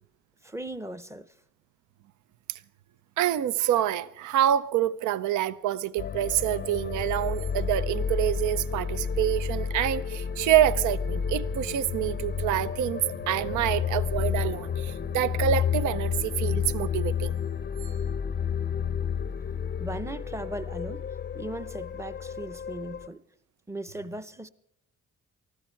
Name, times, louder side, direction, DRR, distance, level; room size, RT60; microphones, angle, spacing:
voice 1, 0.4-1.3 19.8-21.1 21.3-23.2 23.7-24.5, right 1 dB, 10° right, 0.6 m, -38 dB
voice 2, 3.2-17.4, right 11 dB, 80° right, 0.6 m, -27 dB
sound 1, 6.0-23.1, left 7 dB, 35° left, 0.5 m, -31 dB
19.5 x 14.0 x 4.5 m
cardioid pair, 90°, 30 cm